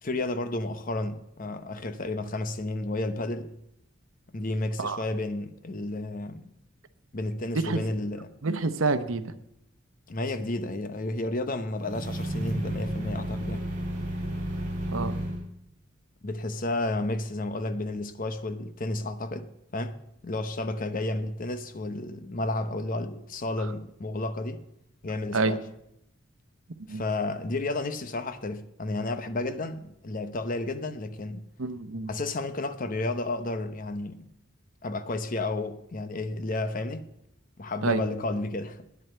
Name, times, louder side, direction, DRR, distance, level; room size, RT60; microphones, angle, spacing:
voice 1, 0.0-3.5 4.3-6.5 7.1-8.3 10.1-13.6 16.2-24.6 25.0-25.6 26.9-31.4 32.1-34.2 34.8-37.0 37.6-38.9, left 2 dB, 40° left, 0.8 m, -32 dB
voice 2, 8.4-9.3 14.9-15.1 25.3-25.5 26.9-27.0 31.6-32.1 37.8-38.0, right 3 dB, 80° right, 0.9 m, -27 dB
sound 1, 11.8-15.4, right 1 dB, 40° right, 2.8 m, -32 dB
10.0 x 7.8 x 7.9 m
head